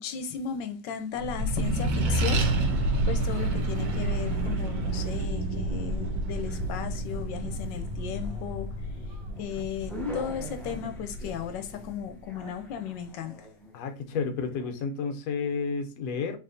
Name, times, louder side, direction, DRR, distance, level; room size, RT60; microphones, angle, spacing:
voice 1, 0.0-2.5 3.1-8.7 9.4-13.5, left 8 dB, 85° left, 1.3 m, -35 dB
Accelerating revving vroom, 1.2-12.1, right 2 dB, 70° right, 1.5 m, -29 dB
sound 1, 2.0-14.7, left 1 dB, ahead, 0.4 m, -44 dB
voice 2, 13.7-16.4, left 5 dB, 65° left, 1.0 m, -31 dB
4.4 x 3.4 x 2.5 m
omnidirectional pair, 1.9 m